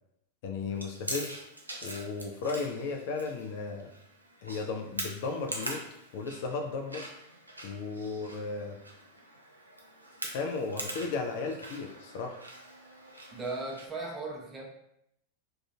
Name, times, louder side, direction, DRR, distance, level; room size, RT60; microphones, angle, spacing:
voice 1, 0.4-1.4 1.8-3.9 4.4-5.8 6.1-7.1 7.6-8.8 10.3-12.4, left 4 dB, 50° left, 4 dB, 0.3 m, -35 dB
Chewing mastication, 0.7-13.8, right 1 dB, 85° right, 0.4 m, -43 dB
voice 2, 13.3-14.7, right 3 dB, 15° right, -2 dB, 0.6 m, -37 dB
2.4 x 2.3 x 2.6 m, 0.76 s
figure-of-eight pair, 90°, 0 cm